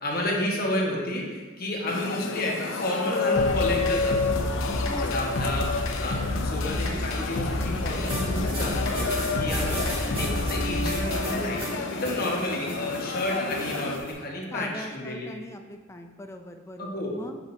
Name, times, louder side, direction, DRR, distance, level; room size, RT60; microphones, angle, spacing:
voice 1, 0.0-4.5 5.1-5.7 6.0-6.2 6.4-11.6 11.9-15.3 16.8-17.1, left 1 dB, 50° left, -1 dB, 1.2 m, -31 dB
sound 1, 1.9-14.0, left 4 dB, 65° left, 0.5 m, -30 dB
sound 2, 3.3-11.3, left 1 dB, 90° left, 0.8 m, -30 dB
voice 2, 4.9-5.3 14.5-17.4, left 1 dB, 15° left, 5 dB, 0.4 m, -40 dB
sound 3, 8.1-14.1, equal, 30° right, 2.1 m, -35 dB
8.9 x 6.1 x 2.7 m, 1.4 s
head